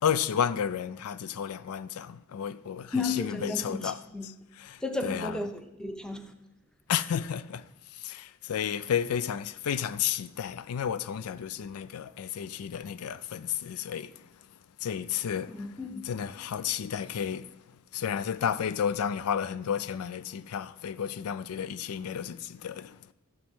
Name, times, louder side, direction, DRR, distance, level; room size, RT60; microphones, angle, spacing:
voice 1, 0.0-5.3 6.9-14.3 14.8-15.7 16.1-17.5 17.9-23.0, left 8 dB, 85° left, 0.4 m, -32 dB
voice 2, 2.9-4.3 4.8-6.3 15.5-16.0, left 3 dB, 5° left, 0.6 m, -33 dB
12.5 x 7.3 x 3.6 m
head